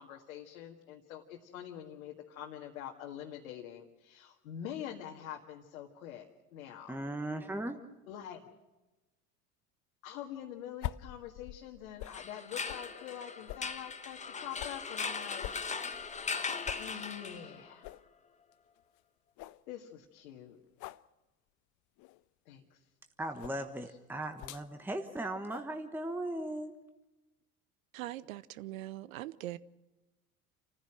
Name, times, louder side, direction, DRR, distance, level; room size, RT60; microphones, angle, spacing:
voice 1, 0.0-7.0 8.1-8.5 10.0-15.9 16.7-17.9 19.7-20.6 22.5-22.8 23.4-23.5, left 10 dB, 70° left, 1.9 m, -45 dB
voice 2, 6.9-7.8 23.2-26.7, right 1 dB, 5° right, 1.3 m, -37 dB
sound 1, 10.8-12.2 12.7-12.9 13.5-14.8 15.4-16.4 16.7-16.9 17.3-17.4 17.8-18.0 18.5-18.6 19.0-19.1 19.4-19.6 20.8-21.0 22.0-22.2 23.4-23.6 24.4-24.7 25.5-25.7, left 16 dB, 45° left, 0.6 m, -44 dB
sound 2, 12.0-17.7, left 5 dB, 15° left, 1.3 m, -39 dB
voice 3, 27.9-29.6, right 15 dB, 70° right, 0.8 m, -41 dB
28.5 x 15.0 x 6.3 m
figure-of-eight pair, 70°, 43 cm